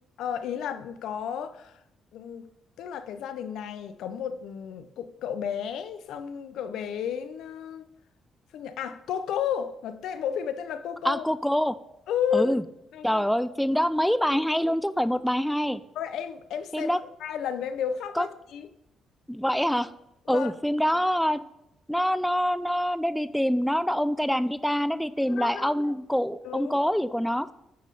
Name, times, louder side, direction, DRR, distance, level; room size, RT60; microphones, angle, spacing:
voice 1, 0.2-1.8 2.1-2.5 2.8-7.9 8.5-11.2 12.1-12.5 12.9-13.2 14.6-14.7 16.0-16.9 17.2-18.7 20.3-20.5 25.3-25.9 26.4-26.8, left 8 dB, 80° left, 11 dB, 0.5 m, -32 dB
voice 2, 11.0-11.8 12.3-12.6 13.0-15.8 16.7-17.0 18.2-18.3 19.3-19.9 20.3-21.4 21.9-27.5, equal, ahead, 14 dB, 0.3 m, -25 dB
9.4 x 3.1 x 5.4 m, 0.83 s
cardioid pair, 90°, 0 cm